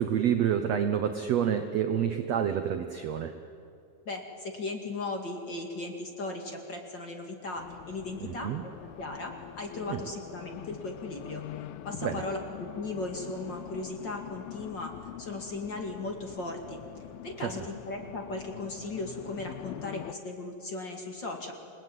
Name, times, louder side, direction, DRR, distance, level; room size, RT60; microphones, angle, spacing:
voice 1, 0.0-3.3 8.2-8.6 9.9-10.0 12.0-12.2 17.4-17.5, right 9 dB, 70° right, 7 dB, 1.6 m, -28 dB
voice 2, 4.1-8.7 9.0-11.4 11.8-14.9 15.2-16.8 17.2-21.5, left 2 dB, 35° left, 2 dB, 2.4 m, -37 dB
Race car auto racing, 7.6-20.1, left 13 dB, 80° left, 2.6 m, -44 dB
28.5 x 20.0 x 9.3 m, 2.5 s
omnidirectional pair, 4.3 m